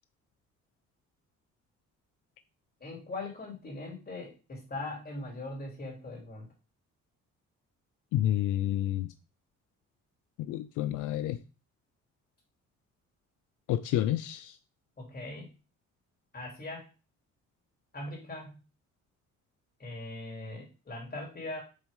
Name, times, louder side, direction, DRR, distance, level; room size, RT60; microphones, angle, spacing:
voice 1, 2.8-6.5 15.0-15.5 16.3-16.9 17.9-18.5 19.8-21.6, left 2 dB, 30° left, 3.2 m, -40 dB
voice 2, 8.1-9.1 10.4-11.4 13.7-14.6, left 12 dB, 85° left, 0.5 m, -29 dB
7.7 x 4.0 x 3.7 m
cardioid pair, 90°, 30 cm